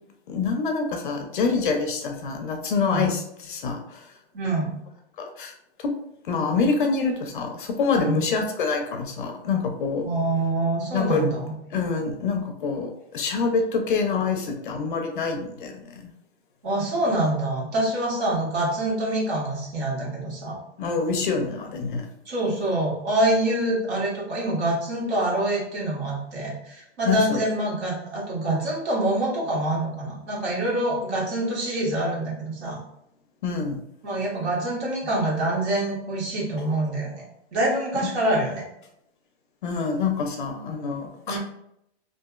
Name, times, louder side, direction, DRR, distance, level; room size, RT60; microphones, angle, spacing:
voice 1, 0.3-4.1 5.2-5.5 5.8-5.9 6.2-10.0 10.9-11.3 11.7-16.1 20.8-22.1 27.1-27.4 33.4-33.8 39.6-41.4, left 4 dB, 45° left, 4 dB, 0.4 m, -26 dB
voice 2, 4.3-4.7 8.0-8.2 10.0-11.5 16.6-20.6 22.2-32.8 34.0-37.2 37.5-38.6 41.3-41.4, right 1 dB, 70° right, -4 dB, 1.5 m, -25 dB
2.8 x 2.5 x 2.3 m, 0.78 s
hypercardioid pair, 170°, 34 cm